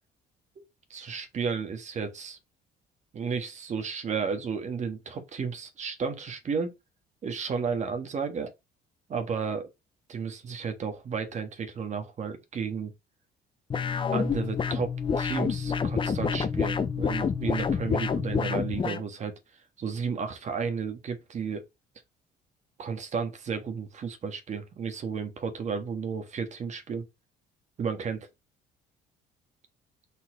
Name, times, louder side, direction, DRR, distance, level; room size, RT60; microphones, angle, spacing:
voice 1, 0.9-2.4 3.1-6.7 7.2-8.5 9.1-9.7 10.1-12.9 14.1-19.3 19.8-21.6 22.8-27.0 27.8-28.3, right 5 dB, 45° right, 1.6 m, -33 dB
sound 1, 13.7-19.0, left 6 dB, 30° left, 0.8 m, -28 dB
5.7 x 4.2 x 5.0 m
cardioid pair, 110°, 17 cm